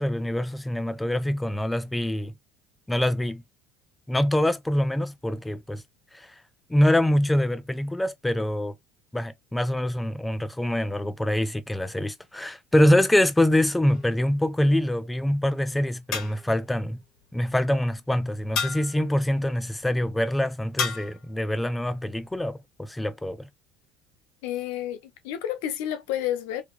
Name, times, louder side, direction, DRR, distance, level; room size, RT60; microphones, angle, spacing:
voice 1, 0.0-2.3 2.9-3.4 4.1-5.8 6.1-6.3 6.7-8.7 9.1-17.0 17.3-23.5, left 1 dB, 10° left, 0.5 m, -24 dB
sound 1, 13.9-14.5 16.1-16.7 18.6-19.1 20.8-21.2, left 6 dB, 55° left, 1.9 m, -31 dB
voice 2, 24.4-26.6, left 11 dB, 75° left, 0.6 m, -30 dB
3.3 x 2.9 x 2.3 m
hypercardioid pair, 75°, 0 cm